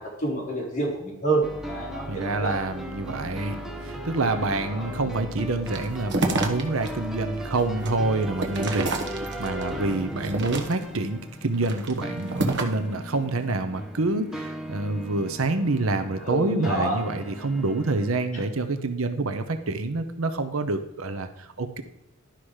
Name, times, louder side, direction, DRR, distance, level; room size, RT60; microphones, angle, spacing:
voice 1, 0.0-2.5 4.7-5.0 16.2-17.0, right 2 dB, 40° left, -4 dB, 4.3 m, -28 dB
sound 1, 1.4-18.3, equal, ahead, 1.0 m, -37 dB
voice 2, 2.1-21.8, right 2 dB, 75° right, 8 dB, 0.8 m, -27 dB
sound 2, 5.7-6.9 7.3-9.6 10.1-11.0 11.5-12.9, right 2 dB, 60° right, 1.3 m, -29 dB
11.5 x 5.9 x 4.9 m, 0.90 s
head